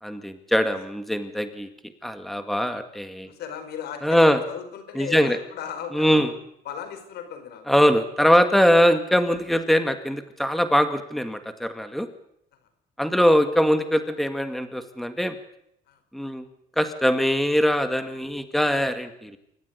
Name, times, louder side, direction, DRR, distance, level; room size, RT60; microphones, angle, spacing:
voice 1, 0.0-1.7 2.0-3.3 4.0-4.4 5.0-5.4 5.9-6.3 7.7-12.1 13.0-15.4 16.1-16.4 16.8-19.4, equal, ahead, 8 dB, 2.1 m, -22 dB
voice 2, 3.2-6.3 6.7-7.7 15.9-16.0, left 8 dB, 75° left, 9 dB, 5.3 m, -36 dB
27.0 x 15.0 x 9.7 m, 0.76 s
cardioid pair, 110°, 17 cm